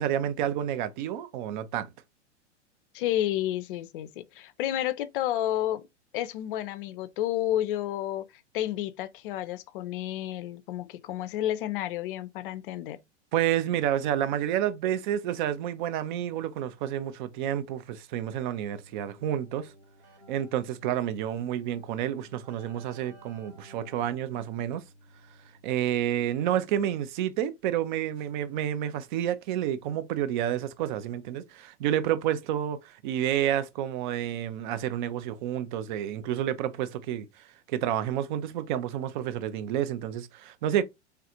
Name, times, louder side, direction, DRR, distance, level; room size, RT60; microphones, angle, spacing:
voice 1, 0.0-1.9 13.3-19.7 20.3-24.8 25.6-40.8, right 11 dB, 45° right, 0.5 m, -29 dB
voice 2, 2.9-5.8 6.1-8.2 8.5-13.0, left 12 dB, 50° left, 0.5 m, -31 dB
Keyboard (musical), 18.6-25.9, right 1 dB, 70° right, 1.4 m, -55 dB
3.4 x 2.4 x 2.7 m
figure-of-eight pair, 100°, 35 cm